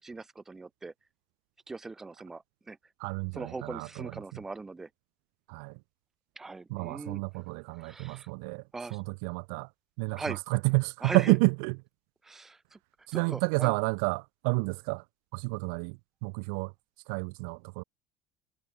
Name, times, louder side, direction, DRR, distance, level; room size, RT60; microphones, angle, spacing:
voice 1, 0.0-0.9 1.7-2.8 3.3-4.9 6.3-7.2 7.8-8.3 8.7-9.0 10.2-10.4 11.0-11.3 12.2-12.8 13.1-13.7, right 3 dB, 15° right, 5.0 m, -40 dB
voice 2, 3.0-4.1 5.5-5.8 6.7-8.6 8.9-9.7 10.0-11.7 13.1-15.0 15.3-16.7 17.1-17.8, right 38 dB, 85° right, 0.6 m, -30 dB
cardioid pair, 125°, 2 cm